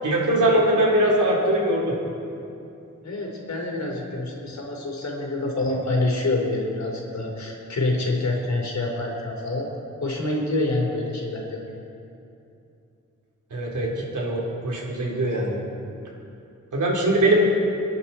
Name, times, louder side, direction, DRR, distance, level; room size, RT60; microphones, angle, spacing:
voice 1, 0.0-2.0 13.5-15.6 16.7-17.4, right 1 dB, 75° right, -4 dB, 4.2 m, -21 dB
voice 2, 3.0-9.7 10.0-11.6, left 2 dB, 60° left, -1 dB, 4.2 m, -26 dB
29.0 x 10.5 x 4.5 m, 2.7 s
cardioid pair, 65°, 31 cm